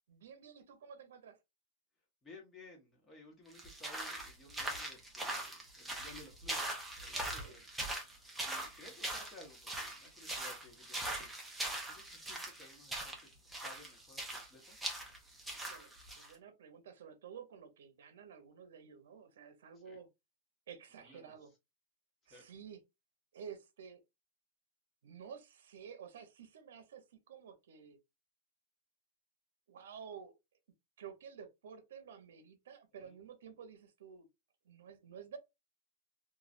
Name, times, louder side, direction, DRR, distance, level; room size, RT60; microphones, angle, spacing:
voice 1, 0.1-1.4 7.1-7.6 11.6-11.8 15.6-20.1 20.7-21.5 22.3-22.8 23.3-24.0 25.0-28.0 29.7-30.3 31.0-34.3 34.6-35.4, right 7 dB, 85° right, 0.7 m, -52 dB
voice 2, 2.2-7.6 8.4-11.3 11.9-14.8 19.8-20.0 20.9-21.3 22.3-22.5 33.0-33.2, left 2 dB, 15° left, 1.1 m, -57 dB
sound 1, 3.5-16.3, right 1 dB, 5° right, 0.6 m, -41 dB
3.1 x 2.3 x 2.4 m
supercardioid pair, 160°, 0 cm